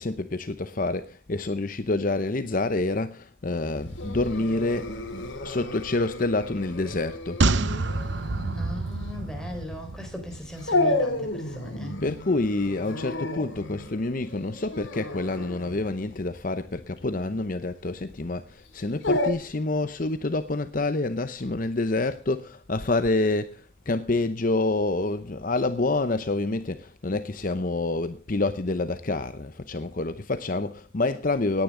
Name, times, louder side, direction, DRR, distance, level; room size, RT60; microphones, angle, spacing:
voice 1, 0.0-4.9 5.4-7.4 12.0-31.6, left 2 dB, 40° left, 0.7 m, -27 dB
Dog, 3.8-19.3, left 2 dB, 65° left, 3.0 m, -32 dB
sound 1, 7.4-10.8 11.1-11.2, right 3 dB, 60° right, 0.8 m, -27 dB
voice 2, 8.5-12.0, left 1 dB, 5° left, 4.3 m, -38 dB
18.5 x 10.5 x 3.8 m
head